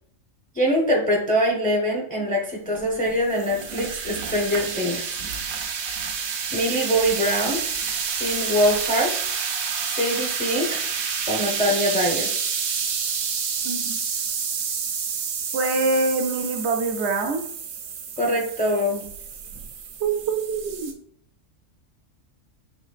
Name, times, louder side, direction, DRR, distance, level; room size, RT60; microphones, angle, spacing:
voice 1, 0.5-5.1 6.5-7.6 8.1-9.1 9.9-10.9 11.3-12.3 18.2-19.0, equal, 10° left, -1 dB, 0.6 m, -23 dB
sound 1, 2.7-20.9, right 6 dB, 90° right, 1.1 m, -29 dB
voice 2, 13.6-14.0 15.5-17.4 20.0-20.9, right 3 dB, 65° right, 2 dB, 0.8 m, -25 dB
5.0 x 3.2 x 2.4 m, 0.63 s
omnidirectional pair, 1.4 m